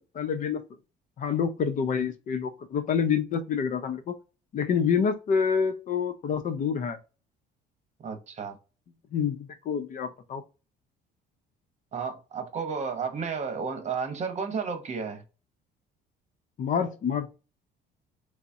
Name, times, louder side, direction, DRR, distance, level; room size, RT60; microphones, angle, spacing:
voice 1, 0.1-0.6 1.2-4.2 4.5-7.0 9.1-10.4 16.6-17.3, left 6 dB, 50° left, 0.6 m, -27 dB
voice 2, 8.0-8.5 11.9-15.2, right 5 dB, 40° right, 1.0 m, -32 dB
3.9 x 2.0 x 3.5 m
cardioid pair, 110°, 17 cm